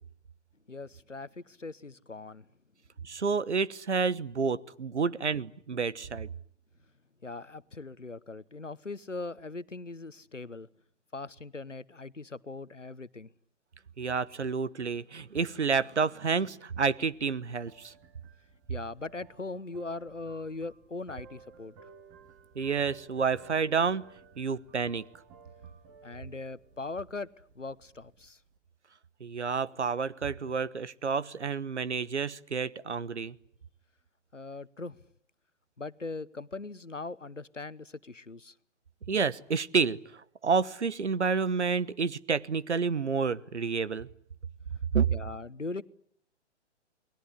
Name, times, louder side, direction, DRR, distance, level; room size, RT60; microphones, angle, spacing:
voice 1, 0.7-2.5 7.2-10.7 11.1-13.3 18.7-21.7 26.0-27.3 27.5-28.4 34.3-35.0 35.8-38.5 45.1-45.8, left 3 dB, 90° left, 1.1 m, -40 dB
voice 2, 3.0-6.3 14.0-17.9 22.5-24.1 24.4-25.1 29.2-33.3 39.1-44.1 44.9-45.1, right 5 dB, 70° right, 1.2 m, -29 dB
sound 1, 17.0-28.6, right 5 dB, 25° right, 2.3 m, -56 dB
29.0 x 20.5 x 9.8 m
figure-of-eight pair, 125°, 36 cm